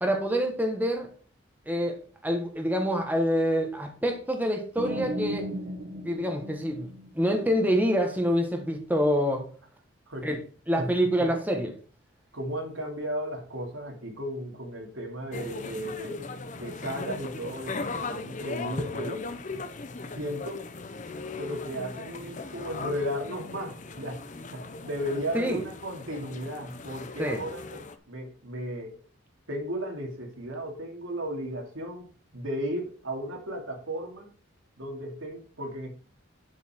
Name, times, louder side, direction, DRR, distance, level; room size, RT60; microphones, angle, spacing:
voice 1, 0.0-1.1 1.7-2.0 2.2-5.5 6.0-6.9 7.1-9.4 10.2-10.4 10.7-11.7 25.3-25.6 27.2-27.4, equal, 10° right, 3 dB, 1.4 m, -26 dB
sound 1, 4.8-7.6, right 1 dB, 50° right, 1.2 m, -36 dB
voice 2, 10.1-10.4 10.8-11.3 12.3-16.3 16.5-19.3 20.2-20.6 21.4-27.8 28.1-29.0 29.5-34.3 34.8-35.9, equal, 85° right, 2 dB, 2.8 m, -35 dB
sound 2, 15.3-28.0, left 3 dB, 40° left, 0.8 m, -38 dB
11.0 x 5.7 x 4.5 m, 0.41 s
head